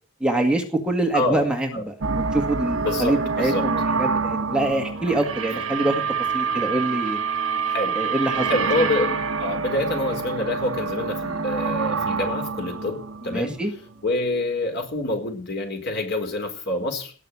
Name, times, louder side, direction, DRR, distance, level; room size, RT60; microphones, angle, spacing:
voice 1, 0.2-1.9 2.3-6.0 6.3-7.2 8.0-8.5 13.3-13.7, right 1 dB, 5° right, 2 dB, 2.1 m, -24 dB
voice 2, 1.1-1.5 1.7-1.8 2.8-3.7 5.1-5.2 6.5-6.6 7.7-7.9 8.4-13.5 14.0-17.1, left 2 dB, 60° left, 4 dB, 4.8 m, -27 dB
sound 1, 2.0-14.1, right 5 dB, 85° right, 1.4 m, -27 dB
18.5 x 6.7 x 9.8 m, 0.43 s
head